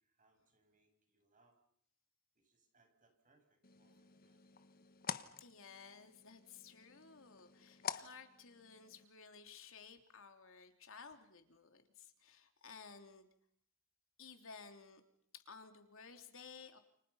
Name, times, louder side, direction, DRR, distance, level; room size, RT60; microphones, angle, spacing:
voice 1, 0.0-1.6 2.3-4.5, right 3 dB, 40° right, 4 dB, 7.6 m, -75 dB
sound 1, 3.6-9.0, left 7 dB, 45° left, 1.3 m, -49 dB
voice 2, 5.4-13.3 14.2-15.0 15.3-16.8, left 5 dB, 65° left, 6 dB, 3.2 m, -56 dB
30.0 x 29.5 x 5.7 m, 0.67 s
head